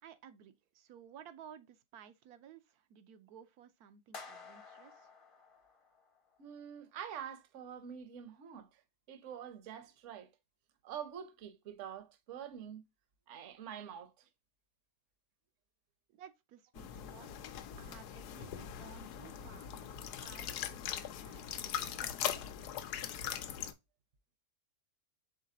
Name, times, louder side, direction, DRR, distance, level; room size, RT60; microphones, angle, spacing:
voice 1, 0.0-5.1 16.1-17.5 17.8-22.3, right 8 dB, 75° right, 1.1 m, -56 dB
sound 1, 4.1-6.4, left 4 dB, 30° left, 0.7 m, -52 dB
voice 2, 6.4-8.8 9.1-10.3 10.8-12.8 13.3-14.2, right 8 dB, 55° right, 1.0 m, -46 dB
sound 2, 16.8-23.7, left 10 dB, 85° left, 1.2 m, -41 dB
4.9 x 3.8 x 2.7 m
omnidirectional pair, 1.7 m